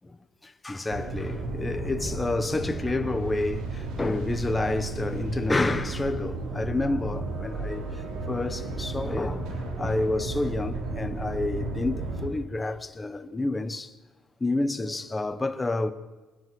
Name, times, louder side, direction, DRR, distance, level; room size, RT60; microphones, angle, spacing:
voice 1, 0.6-13.9 14.4-15.9, left 2 dB, 10° left, 1.2 m, -29 dB
sound 1, 0.9-12.3, right 2 dB, 75° right, 4.8 m, -33 dB
24.0 x 20.5 x 6.3 m
cardioid pair, 155°, 0 cm